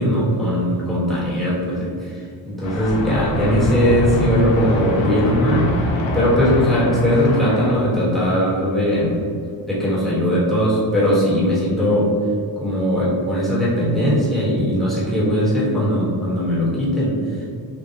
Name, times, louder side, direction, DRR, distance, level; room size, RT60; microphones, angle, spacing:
voice 1, 0.0-2.2 2.4-5.7 6.1-9.2 9.6-12.1 12.6-17.5, equal, ahead, -9 dB, 1.3 m, -19 dB
sound 1, 2.6-7.7, left 1 dB, 75° left, 0.8 m, -24 dB
5.5 x 2.4 x 2.8 m, 2.2 s
cardioid pair, 130°, 46 cm